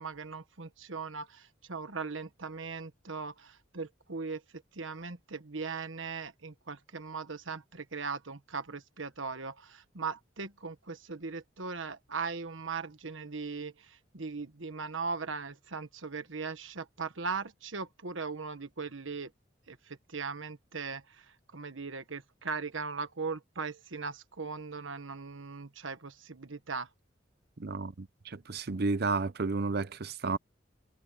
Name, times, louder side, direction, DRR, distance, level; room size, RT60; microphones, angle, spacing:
voice 1, 0.0-19.3 19.7-26.9, right 4 dB, 90° right, 1.4 m, -39 dB
voice 2, 27.6-30.4, right 3 dB, 55° right, 0.7 m, -32 dB
head